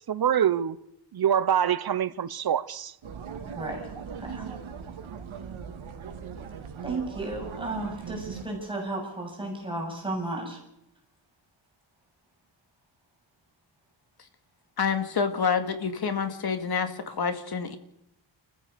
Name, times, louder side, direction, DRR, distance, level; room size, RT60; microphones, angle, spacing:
voice 1, 0.1-0.8 1.1-2.9, right 9 dB, 50° right, 0.9 m, -25 dB
sound 1, 3.0-8.5, right 6 dB, 80° right, 2.5 m, -39 dB
voice 2, 3.5-3.9 4.2-4.5 6.8-10.6, right 2 dB, 10° right, 7.5 m, -33 dB
voice 3, 14.8-17.8, left 6 dB, 50° left, 2.3 m, -28 dB
30.0 x 15.0 x 6.8 m
wide cardioid pair, 170°, 47 cm